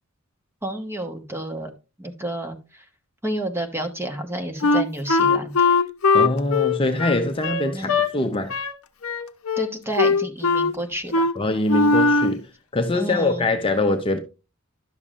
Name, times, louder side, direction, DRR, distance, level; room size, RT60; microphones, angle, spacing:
voice 1, 0.6-1.7 2.0-2.8 3.2-5.8 7.7-8.0 9.6-11.3 12.9-13.5, right 1 dB, 10° right, 1.2 m, -30 dB
Wind instrument woodwind instrument, 4.6-8.1 8.5-8.8 9.0-9.7 10.0-10.7 11.1-11.3 11.7-12.4, left 4 dB, 70° left, 0.7 m, -20 dB
voice 2, 6.1-8.5 11.4-12.5 12.7-14.2, left 2 dB, 25° left, 0.7 m, -23 dB
11.0 x 7.0 x 2.5 m
head